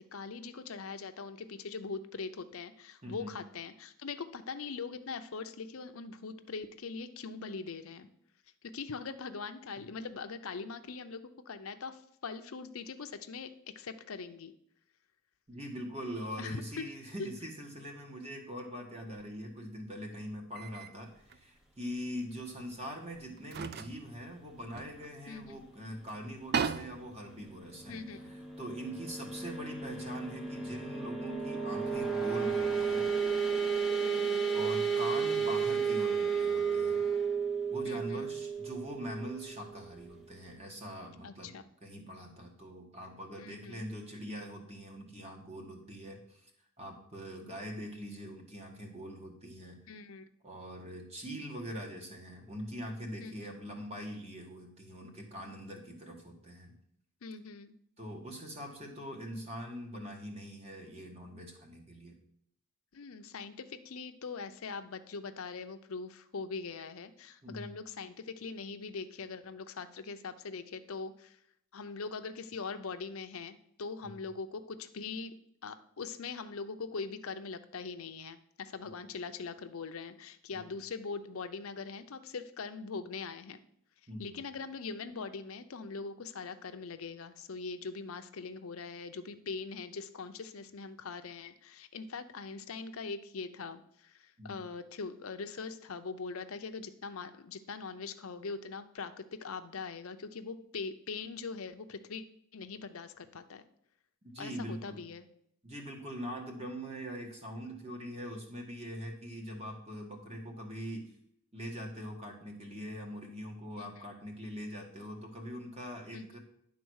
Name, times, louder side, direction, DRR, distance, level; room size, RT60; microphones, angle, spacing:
voice 1, 0.1-8.1 8.7-14.5 16.4-16.6 25.3-25.6 27.9-28.2 34.0-34.5 37.8-38.3 41.2-41.6 43.4-43.8 49.9-50.2 53.2-53.6 57.2-57.7 62.9-71.4 71.7-75.3 75.6-83.6 84.2-102.2 102.5-103.6 104.4-105.3 113.8-113.9 116.1-116.3, left 4 dB, 75° left, 9 dB, 0.6 m, -42 dB
voice 2, 3.0-3.3 15.5-33.1 34.5-37.0 37.7-41.5 41.8-46.5 46.8-49.8 50.4-56.7 58.0-62.2 67.4-67.7 74.0-74.1 80.5-80.6 84.1-84.4 94.4-94.6 104.3-105.0 105.6-111.1 111.5-116.4, equal, 30° right, 2 dB, 1.6 m, -43 dB
sound 1, 19.1-19.3 20.5-20.9 21.3-21.4 22.7-22.8 23.4-25.6 25.9-26.0 26.3-28.7, right 6 dB, 45° right, 0.4 m, -38 dB
sound 2, 27.6-40.1, right 6 dB, ahead, 0.9 m, -33 dB
10.5 x 3.9 x 6.3 m, 0.70 s
head